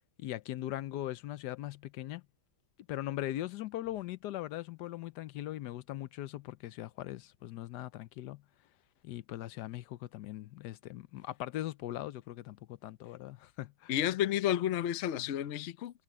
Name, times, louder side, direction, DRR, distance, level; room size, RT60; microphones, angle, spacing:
voice 1, 0.2-2.2 2.9-8.4 9.0-13.9, left 14 dB, 90° left, 1.2 m, -40 dB
voice 2, 13.9-15.9, left 11 dB, 55° left, 0.8 m, -31 dB
omnidirectional pair, 1.8 m